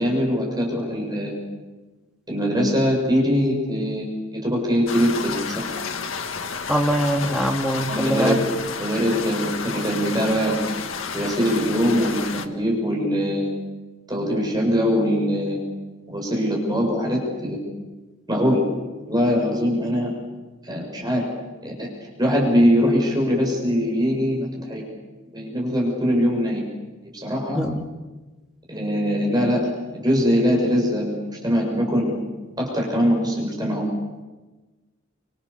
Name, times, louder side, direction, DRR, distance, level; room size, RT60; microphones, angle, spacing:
voice 1, 0.0-1.4 2.3-5.8 7.9-8.4 8.8-10.6 11.1-13.5 14.1-15.6 16.1-17.6 18.3-18.6 19.1-20.1 20.6-21.3 21.6-21.9 22.2-24.8 25.3-26.6 27.1-27.6 28.7-32.2 32.6-33.9, equal, 20° right, -1 dB, 7.2 m, -22 dB
sound 1, 4.9-12.5, left 5 dB, 80° left, 1.8 m, -31 dB
voice 2, 6.7-8.4 27.5-27.8, equal, 5° right, 2 dB, 2.8 m, -22 dB
29.0 x 26.5 x 7.0 m, 1.2 s
head